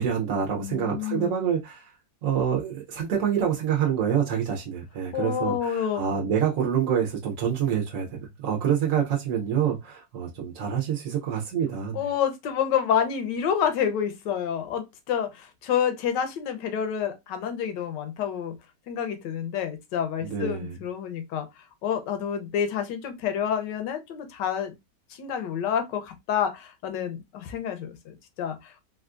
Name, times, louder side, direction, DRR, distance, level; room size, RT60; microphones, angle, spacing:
voice 1, 0.0-1.9 2.2-12.0 20.2-20.7, right 8 dB, 60° right, 0.9 m, -27 dB
voice 2, 0.6-1.4 5.1-6.0 11.9-18.5 18.9-24.7 25.1-28.8, left 8 dB, 85° left, 1.3 m, -28 dB
3.5 x 2.4 x 2.4 m
omnidirectional pair, 1.8 m